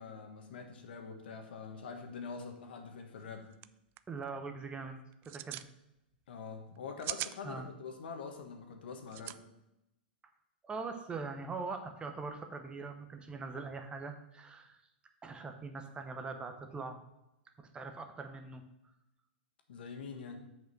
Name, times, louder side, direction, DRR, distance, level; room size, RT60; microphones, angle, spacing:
voice 1, 0.0-3.5 6.3-9.4 19.7-20.4, left 5 dB, 75° left, 5 dB, 1.5 m, -45 dB
sound 1, 3.2-3.3 3.5-3.7 4.0-4.3 5.1-5.7 6.7-7.4 9.1-9.4, right 15 dB, 40° right, 0.3 m, -40 dB
voice 2, 4.1-5.6 7.4-7.7 10.6-14.8 15.2-17.0 17.6-18.9, right 4 dB, 15° right, 6 dB, 0.9 m, -42 dB
6.8 x 5.3 x 6.1 m, 0.88 s
hypercardioid pair, 110°, 6 cm